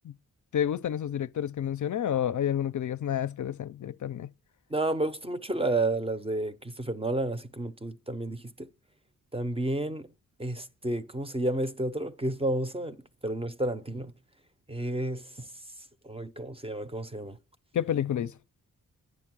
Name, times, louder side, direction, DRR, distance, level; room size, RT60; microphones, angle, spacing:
voice 1, 0.5-4.3 17.7-18.3, left 10 dB, 60° left, 0.5 m, -29 dB
voice 2, 4.7-8.7 9.3-10.1 10.4-14.1 14.7-15.5 16.0-17.4, right 2 dB, 15° right, 0.6 m, -31 dB
11.0 x 9.9 x 6.0 m
wide cardioid pair, 125°, 34 cm